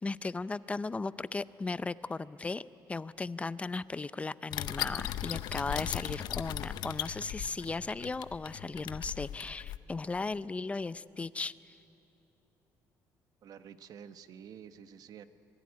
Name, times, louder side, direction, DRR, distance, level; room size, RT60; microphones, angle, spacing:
voice 1, 0.0-2.6 2.9-11.8, left 3 dB, 15° left, 16 dB, 0.5 m, -36 dB
sound 1, 4.5-9.8, left 12 dB, 75° left, 0.7 m, -38 dB
voice 2, 13.4-15.2, right 8 dB, 55° right, 11 dB, 1.1 m, -49 dB
26.0 x 20.5 x 9.6 m, 3.0 s
cardioid pair, 135°, 7 cm